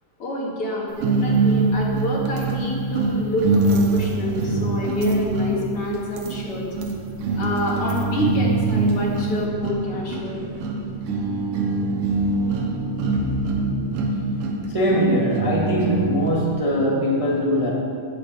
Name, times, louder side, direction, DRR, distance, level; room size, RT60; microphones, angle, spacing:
voice 1, 0.2-6.7 7.4-10.4, left 1 dB, 45° left, -3 dB, 2.9 m, -28 dB
sound 1, 1.0-16.5, right 3 dB, 80° right, 2.9 m, -23 dB
voice 2, 14.7-17.7, equal, 30° right, -4 dB, 0.6 m, -21 dB
12.0 x 8.0 x 8.1 m, 2.3 s
omnidirectional pair, 3.9 m